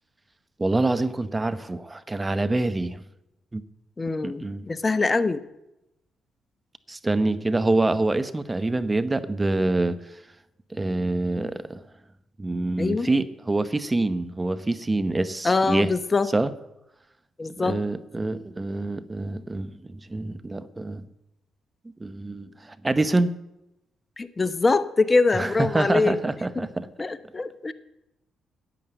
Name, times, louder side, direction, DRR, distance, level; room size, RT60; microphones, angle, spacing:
voice 1, 0.6-3.0 3.5-3.6 4.2-4.7 6.9-10.0 10.7-11.8 12.4-15.9 16.3-16.5 17.6-21.1 22.0-23.3 25.3-26.9, right 2 dB, 25° right, 13 dB, 0.9 m, -26 dB
voice 2, 4.0-5.4 12.8-13.1 15.4-16.3 17.4-17.8 24.2-26.2 27.0-27.7, left 3 dB, 30° left, 14 dB, 0.8 m, -23 dB
10.0 x 9.1 x 8.0 m, 0.91 s
supercardioid pair, 50°, 0 cm